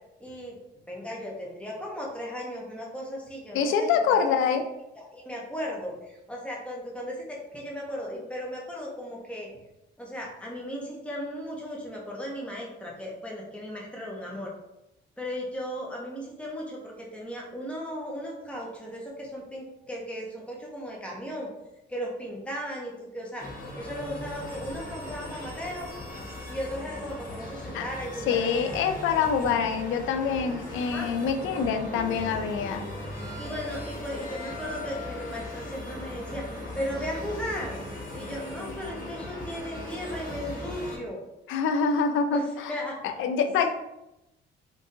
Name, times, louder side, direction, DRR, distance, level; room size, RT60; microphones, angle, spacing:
voice 1, 0.2-0.6 0.9-4.4 5.0-9.5 10.0-14.5 15.2-21.5 21.9-23.5 23.8-25.9 26.5-28.7 30.8-31.1 33.4-37.8 38.1-41.2 42.3-43.0 43.6-43.7, equal, 5° left, -3 dB, 1.0 m, -36 dB
voice 2, 3.5-4.6 27.7-27.8 28.3-32.9 41.5-42.5 43.0-43.7, left 6 dB, 85° left, 6 dB, 0.4 m, -25 dB
sound 1, 23.4-41.0, left 1 dB, 45° left, 1.3 m, -38 dB
3.7 x 2.6 x 2.7 m, 0.93 s
cardioid pair, 90°, 20 cm